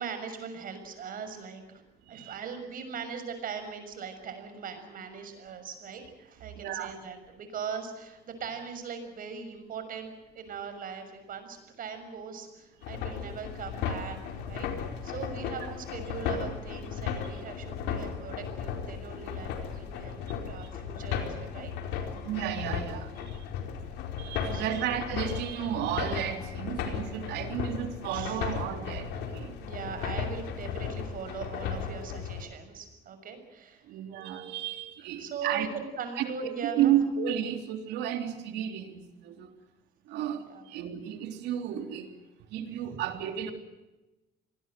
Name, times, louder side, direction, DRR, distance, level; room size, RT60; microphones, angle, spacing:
voice 1, 0.0-1.8 2.1-14.2 14.5-14.7 15.0-21.7 24.5-24.9 28.1-28.3 29.6-34.0 35.2-37.0 40.5-40.6, right 6 dB, 55° right, 8 dB, 6.4 m, -40 dB
voice 2, 2.0-2.4 6.5-6.9 15.6-15.7 16.1-16.2 17.2-17.4 18.9-19.0 20.6-20.7 22.2-23.4 24.2-29.6 33.8-35.7 36.2-39.6 40.1-42.2 42.5-43.5, right 10 dB, 85° right, 6 dB, 3.5 m, -32 dB
sound 1, 12.8-32.4, left 7 dB, 90° left, 4.5 m, -35 dB
26.5 x 20.5 x 7.8 m, 1.0 s
cardioid pair, 110°, 17 cm